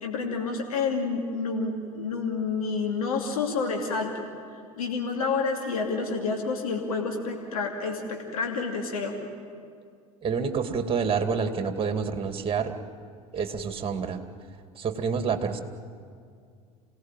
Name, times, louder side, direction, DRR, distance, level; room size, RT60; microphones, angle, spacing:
voice 1, 0.0-4.3 4.8-9.2, left 4 dB, 80° left, 2 dB, 2.7 m, -29 dB
voice 2, 10.2-12.7 13.3-14.2 14.8-15.6, right 6 dB, 30° right, 7 dB, 2.4 m, -28 dB
28.0 x 18.0 x 9.1 m, 2.2 s
hypercardioid pair, 75°, 18 cm